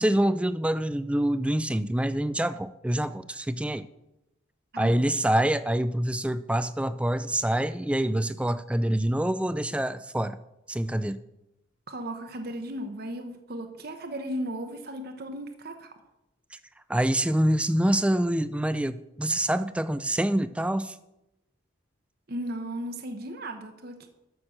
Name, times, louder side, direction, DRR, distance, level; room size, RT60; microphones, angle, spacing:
voice 1, 0.0-3.8 4.8-10.4 10.7-11.2 16.9-21.0, right 1 dB, 5° right, 13 dB, 0.4 m, -26 dB
voice 2, 11.9-15.9 22.3-24.1, right 1 dB, 50° right, 6 dB, 0.9 m, -36 dB
13.0 x 6.3 x 6.5 m, 0.90 s
head